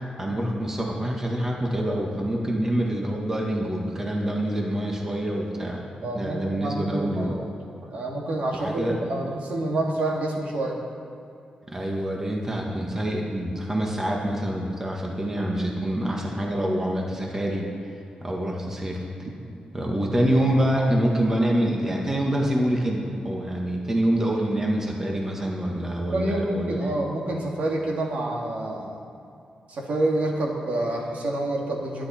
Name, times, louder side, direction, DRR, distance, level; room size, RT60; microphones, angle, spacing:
voice 1, 0.2-5.8 6.1-7.3 8.5-9.0 11.7-17.6 18.2-19.0 19.7-26.8, right 1 dB, 20° right, -1 dB, 1.6 m, -26 dB
voice 2, 6.0-7.5 7.8-10.8 19.2-19.3 26.1-29.0 29.7-32.1, right 1 dB, 60° right, -1 dB, 2.2 m, -28 dB
22.5 x 10.5 x 4.4 m, 2.8 s
wide cardioid pair, 170°, 3 cm